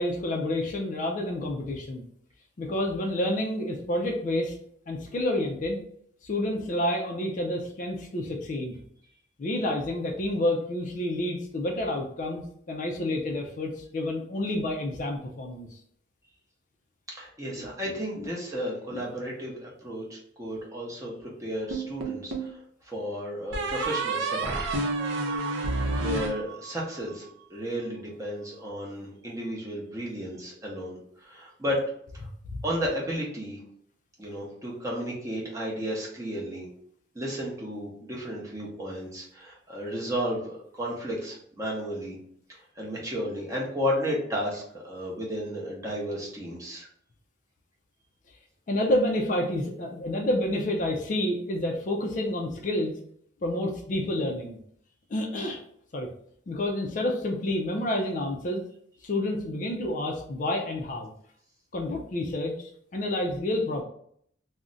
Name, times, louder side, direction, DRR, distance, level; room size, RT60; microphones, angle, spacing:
voice 1, 0.0-2.1 2.6-4.6 4.9-5.8 6.2-8.8 9.4-15.8 17.5-18.3 18.9-19.0 32.5-32.6 48.7-52.9 53.4-54.6 55.1-55.6 55.9-56.1 56.5-58.6 59.0-61.1 61.7-63.8, left 1 dB, 40° left, 2 dB, 0.4 m, -29 dB
voice 2, 17.1-24.8 26.0-31.8 32.1-32.3 32.6-33.6 34.2-36.7 37.1-42.2 42.5-46.9, equal, 15° right, -4 dB, 0.7 m, -33 dB
sound 1, 21.7-22.6 23.5-27.0, right 2 dB, 70° right, 0.6 m, -30 dB
2.4 x 2.0 x 3.7 m, 0.65 s
head